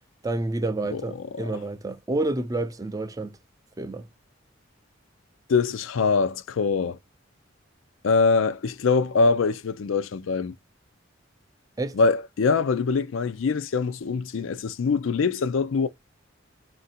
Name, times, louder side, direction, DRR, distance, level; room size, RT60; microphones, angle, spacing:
voice 1, 0.2-3.4 3.8-4.1 11.8-12.0, right 2 dB, 15° right, 0.4 m, -29 dB
voice 2, 5.5-7.0 8.0-10.5 12.0-15.9, left 4 dB, 75° left, 0.4 m, -23 dB
4.4 x 2.6 x 4.1 m
head